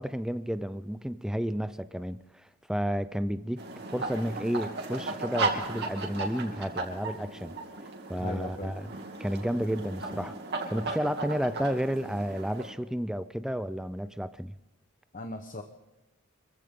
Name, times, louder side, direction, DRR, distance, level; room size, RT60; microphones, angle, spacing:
voice 1, 0.0-7.5 8.1-8.9 9.2-10.4 10.7-14.5, equal, 5° right, 13 dB, 0.4 m, -32 dB
sound 1, 3.6-12.7, right 3 dB, 50° right, 2.5 m, -36 dB
voice 2, 8.2-8.7 15.1-15.6, left 2 dB, 40° left, 6 dB, 1.0 m, -37 dB
25.0 x 15.5 x 3.7 m, 1.1 s
head